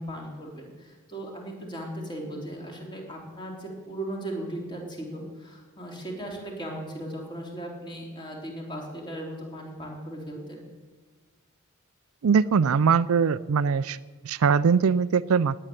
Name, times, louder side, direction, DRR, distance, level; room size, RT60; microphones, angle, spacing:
voice 1, 0.0-10.6, right 1 dB, 20° left, -1 dB, 3.4 m, -37 dB
voice 2, 12.2-14.0 14.2-15.6, right 6 dB, 90° right, 15 dB, 0.4 m, -21 dB
17.5 x 7.8 x 10.0 m, 1.4 s
head